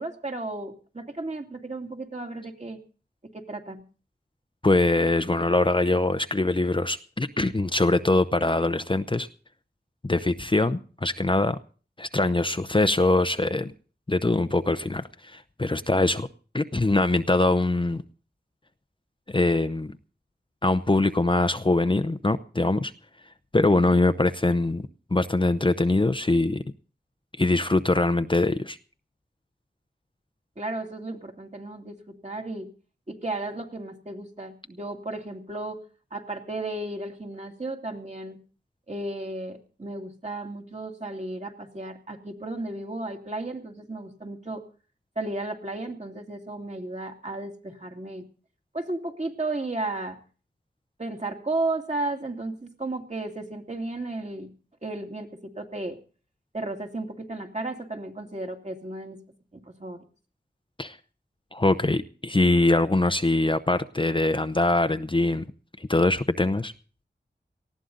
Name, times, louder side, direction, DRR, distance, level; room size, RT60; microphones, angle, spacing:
voice 1, 0.0-2.8 3.3-3.8 30.6-32.0 32.2-32.7 33.1-35.8 36.1-38.4 38.9-44.6 45.2-48.2 48.7-50.2 51.0-54.5 54.8-55.3 55.6-56.0 56.5-59.2 59.8-60.0, right 2 dB, 35° right, 2 dB, 2.5 m, -34 dB
voice 2, 4.6-9.3 10.0-11.6 12.0-13.7 14.1-16.3 16.5-18.0 19.3-19.9 20.6-22.9 23.5-26.6 27.4-28.8 60.8-61.0 61.5-65.5 65.9-66.7, left 2 dB, 25° left, 10 dB, 0.7 m, -23 dB
19.0 x 14.5 x 3.9 m, 0.39 s
wide cardioid pair, 70°, 19 cm